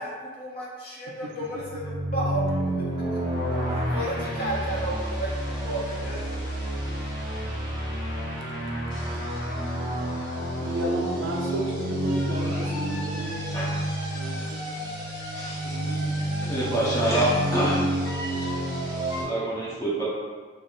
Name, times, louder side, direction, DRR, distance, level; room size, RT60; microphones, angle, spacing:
voice 1, 0.0-2.8 3.7-6.4, right 1 dB, 45° left, -5 dB, 0.7 m, -32 dB
voice 2, 1.1-1.6 10.6-13.7 14.1-14.6 15.6-16.2, equal, 70° right, 0 dB, 0.5 m, -33 dB
A chase in Metropolis, 1.4-19.2, right 1 dB, 20° right, 1.0 m, -29 dB
voice 3, 16.4-17.8 19.2-20.0, right 1 dB, 15° left, -8 dB, 0.7 m, -25 dB
3.0 x 2.0 x 3.9 m, 1.5 s
head